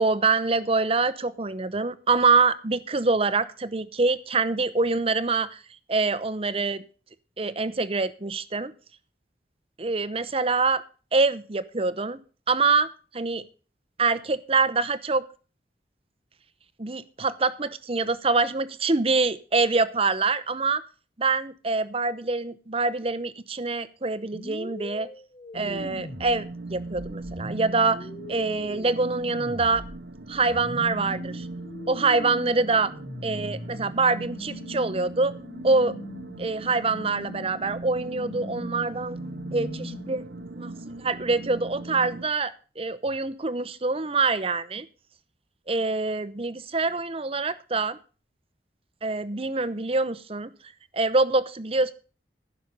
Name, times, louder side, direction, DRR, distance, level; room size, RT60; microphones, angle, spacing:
voice 1, 0.0-5.6 5.9-6.8 7.4-8.7 9.8-10.8 11.1-12.2 12.5-13.4 14.0-15.2 16.8-20.8 21.2-25.1 25.5-28.0 28.3-29.8 30.3-31.5 31.9-32.9 33.2-35.3 35.6-35.9 36.4-39.2 39.5-40.2 40.5-44.8 45.7-48.0 49.0-50.5 50.9-51.9, right 3 dB, 35° right, 15 dB, 0.8 m, -25 dB
sound 1, 24.3-40.4, left 1 dB, 35° left, 1.0 m, -41 dB
sound 2, 25.5-42.2, right 2 dB, 85° right, 1.1 m, -39 dB
15.0 x 6.4 x 5.4 m, 0.36 s
head